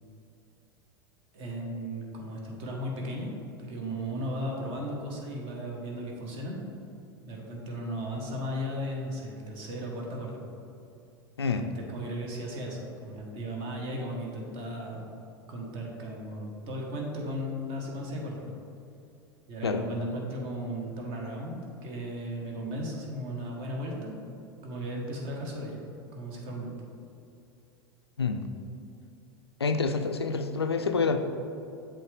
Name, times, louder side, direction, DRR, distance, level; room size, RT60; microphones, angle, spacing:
voice 1, 1.3-6.6 7.2-10.4 11.5-15.1 15.5-18.4 19.5-24.2 24.6-25.8 26.1-26.7, equal, 45° right, -1 dB, 1.3 m, -36 dB
voice 2, 29.6-31.2, left 4 dB, 85° left, 7 dB, 0.4 m, -27 dB
7.5 x 3.8 x 3.5 m, 2.6 s
figure-of-eight pair, 85°, 13 cm